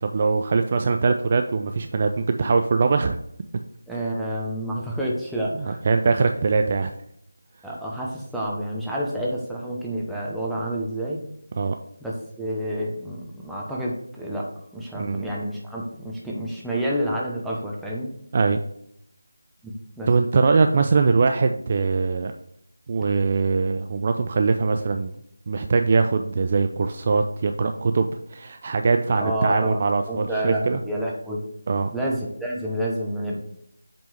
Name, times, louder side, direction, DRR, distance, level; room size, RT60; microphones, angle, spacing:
voice 1, 0.0-3.2 5.6-6.9 11.6-11.8 14.9-15.3 18.3-18.6 20.1-22.3 22.9-25.1 25.5-30.8 31.7-31.9, right 4 dB, 35° right, 6 dB, 0.3 m, -22 dB
voice 2, 3.9-5.8 7.6-11.2 12.0-18.1 19.6-20.1 29.2-29.8 30.1-31.5 31.9-33.4, right 1 dB, ahead, -6 dB, 0.8 m, -29 dB
7.7 x 3.5 x 4.4 m, 0.72 s
figure-of-eight pair, 165°, 0 cm